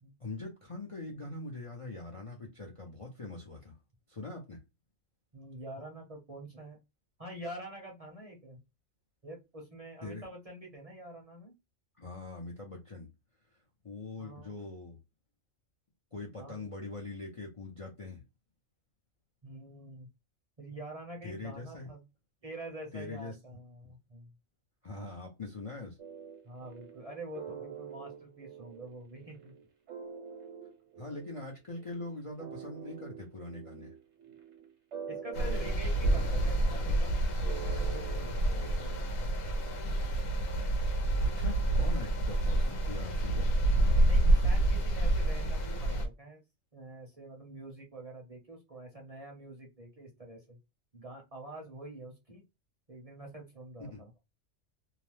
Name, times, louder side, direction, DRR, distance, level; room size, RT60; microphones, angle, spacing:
voice 1, 0.2-3.7 4.1-4.6 10.0-10.3 12.0-13.1 13.8-15.0 16.1-18.2 21.2-21.9 22.9-23.3 24.8-26.0 31.0-33.9 41.2-43.5 53.9-54.0, left 2 dB, 35° left, 0.6 m, -42 dB
voice 2, 5.3-6.8 7.2-8.6 9.2-11.5 14.2-14.6 16.3-16.7 19.4-20.1 20.6-22.0 22.4-24.3 26.4-29.5 35.1-37.1 37.4-39.5 44.0-46.4 46.7-50.6 50.9-52.4 52.9-54.1, right 1 dB, 35° right, 0.8 m, -46 dB
sound 1, 26.0-39.8, right 7 dB, 65° right, 1.2 m, -46 dB
sound 2, 35.3-46.1, right 1 dB, 85° left, 1.1 m, -28 dB
2.8 x 2.0 x 3.0 m
omnidirectional pair, 1.3 m